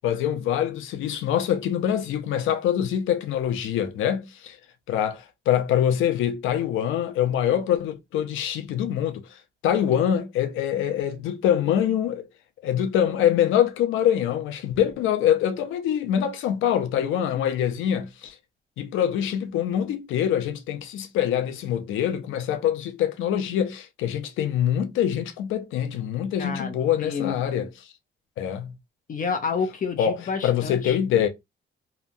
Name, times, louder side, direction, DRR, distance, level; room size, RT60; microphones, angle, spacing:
voice 1, 0.0-4.6 4.9-9.4 9.6-12.3 12.6-18.4 18.8-27.7 28.4-28.8 30.0-31.3, left 10 dB, 85° left, 0.6 m, -24 dB
voice 2, 16.9-17.5 26.4-27.7 29.1-31.0, left 5 dB, 45° left, 0.6 m, -30 dB
2.9 x 2.2 x 2.5 m
cardioid pair, 90°, 20 cm